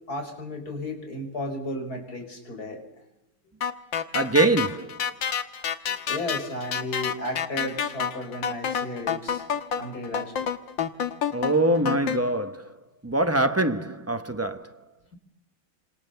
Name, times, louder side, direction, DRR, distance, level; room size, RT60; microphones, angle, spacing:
voice 1, 0.1-2.8 5.9-9.4 9.8-10.5, left 1 dB, 45° left, 6.0 m, -34 dB
sound 1, 3.6-12.2, left 8 dB, 65° left, 2.1 m, -29 dB
voice 2, 4.1-5.0 11.3-12.7 13.0-14.7, right 2 dB, 15° right, 0.5 m, -24 dB
29.5 x 27.0 x 7.0 m
omnidirectional pair, 2.2 m